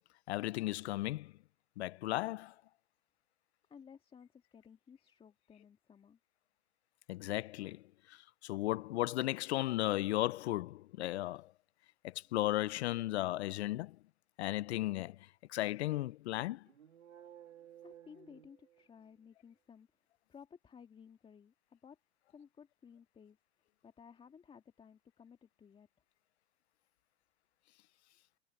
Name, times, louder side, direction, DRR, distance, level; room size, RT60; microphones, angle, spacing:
voice 1, 0.3-1.3 1.8-2.5 7.1-7.8 8.1-8.2 8.4-11.5 12.0-14.0 14.4-15.2 15.5-16.6, left 16 dB, 65° left, 0.5 m, -35 dB
voice 2, 3.7-6.2 17.8-19.9 20.3-22.0 22.3-23.4 23.8-25.9, left 7 dB, 15° left, 1.8 m, -57 dB
sound 1, 16.7-19.2, right 10 dB, 90° right, 2.9 m, -56 dB
hypercardioid pair, 130°, 37 cm